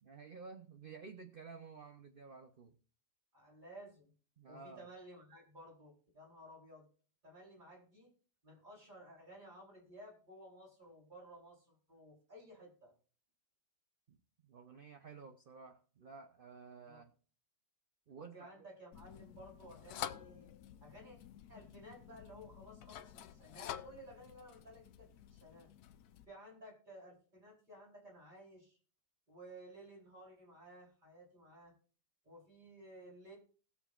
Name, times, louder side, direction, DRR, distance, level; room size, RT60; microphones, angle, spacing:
voice 1, 0.0-2.8 4.4-4.9 14.1-14.2 14.4-17.1 18.1-18.7, right 5 dB, 50° right, 7 dB, 0.7 m, -53 dB
voice 2, 3.3-4.1 4.5-6.9 7.2-8.1 8.4-12.9 16.9-17.0 18.1-20.5 20.8-21.2 21.5-25.7 26.3-28.8 29.3-31.7 32.2-33.4, right 1 dB, 25° right, -3 dB, 4.1 m, -56 dB
sound 1, 18.9-26.2, left 11 dB, 75° left, 1.1 m, -49 dB
19.5 x 7.0 x 2.4 m, 0.40 s
omnidirectional pair, 1.8 m